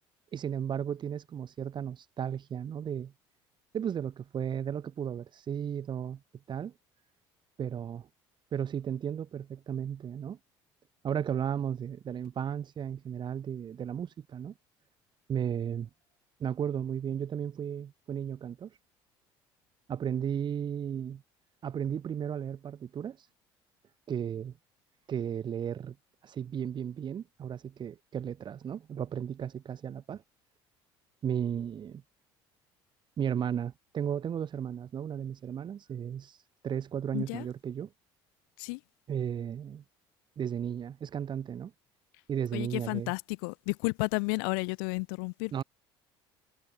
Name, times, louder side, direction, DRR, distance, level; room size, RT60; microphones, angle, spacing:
voice 1, 0.3-3.1 3.7-6.2 6.5-6.7 7.6-8.1 8.5-10.4 11.0-14.5 15.3-15.9 16.4-18.7 19.9-21.2 21.6-23.2 24.1-24.5 25.1-26.0 26.2-30.2 31.2-32.0 33.2-36.4 36.6-37.9 39.1-39.8 40.4-41.7 42.3-43.1 45.5-45.6, right 8 dB, 45° right, 2.9 m, -34 dB
voice 2, 37.1-37.4 38.6-38.8 42.5-45.6, left 36 dB, 85° left, 1.3 m, -32 dB
supercardioid pair, 85°, 11 cm